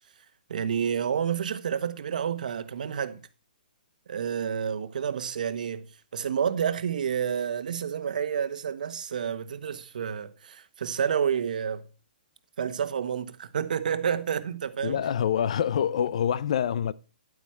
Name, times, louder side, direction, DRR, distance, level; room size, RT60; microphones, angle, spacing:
voice 1, 0.5-3.2 4.1-5.9 6.1-11.9 12.6-15.0, right 8 dB, 60° right, 1.3 m, -29 dB
voice 2, 14.8-16.9, left 9 dB, 45° left, 0.5 m, -26 dB
11.0 x 8.7 x 4.5 m
hypercardioid pair, 170°, 5 cm